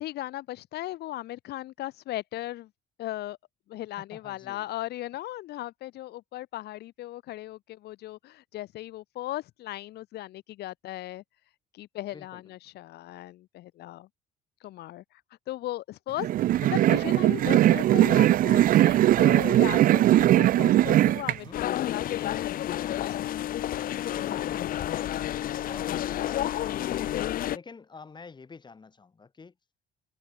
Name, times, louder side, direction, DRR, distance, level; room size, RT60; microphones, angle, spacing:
voice 1, 0.0-2.7 3.0-3.4 3.7-11.2 11.7-14.1 14.6-15.2 15.5-16.3 16.6-23.3 25.1-25.2 25.7-25.9, left 15 dB, 75° left, 3.1 m, -37 dB
voice 2, 4.0-4.7 12.1-12.4 16.3-16.4 21.3-21.6 24.1-25.1 25.6-26.7 27.5-29.5, left 4 dB, 25° left, 7.5 m, -48 dB
sound 1, 16.2-21.4, right 13 dB, 55° right, 0.5 m, -20 dB
sound 2, 21.5-27.6, left 12 dB, 60° left, 0.9 m, -30 dB
cardioid pair, 110°, 17 cm